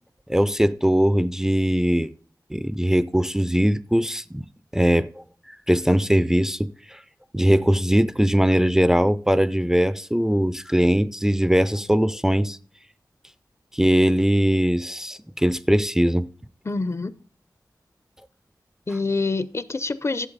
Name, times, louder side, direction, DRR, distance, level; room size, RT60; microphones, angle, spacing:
voice 1, 0.3-2.1 2.5-4.4 4.7-5.2 5.7-7.0 7.3-12.6 13.7-16.3, equal, 5° right, 0.4 m, -20 dB
voice 2, 16.6-17.1 18.9-20.3, left 3 dB, 40° left, 0.6 m, -26 dB
12.0 x 7.7 x 4.0 m
wide cardioid pair, 85°, 7 cm